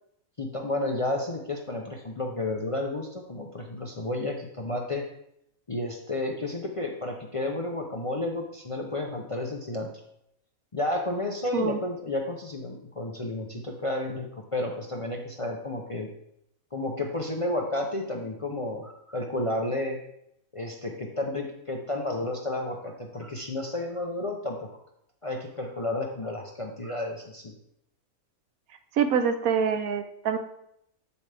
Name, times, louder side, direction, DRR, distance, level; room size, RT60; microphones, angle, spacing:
voice 1, 0.4-5.0 5.7-9.9 10.7-16.1 16.7-20.0 20.5-24.7 25.2-27.5, left 2 dB, 35° left, 1 dB, 0.6 m, -31 dB
voice 2, 28.9-30.4, right 7 dB, 80° right, 8 dB, 1.2 m, -25 dB
7.9 x 7.1 x 3.4 m, 0.76 s
omnidirectional pair, 1.5 m